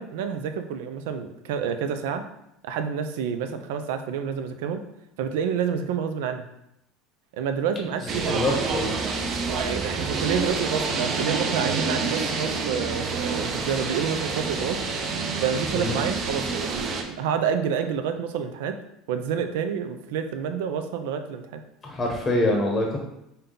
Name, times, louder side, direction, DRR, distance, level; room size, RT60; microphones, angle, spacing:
voice 1, 0.0-2.2 2.6-4.8 5.2-6.4 7.3-8.6 9.5-14.8 15.4-18.8 19.1-21.6, right 7 dB, 80° right, 8 dB, 0.4 m, -28 dB
voice 2, 8.0-8.9 15.7-15.9 21.8-23.0, left 1 dB, 25° left, 0 dB, 0.8 m, -25 dB
sound 1, 8.1-17.0, right 4 dB, 40° right, 0.6 m, -28 dB
5.3 x 2.2 x 3.8 m, 0.83 s
supercardioid pair, 120°, 0 cm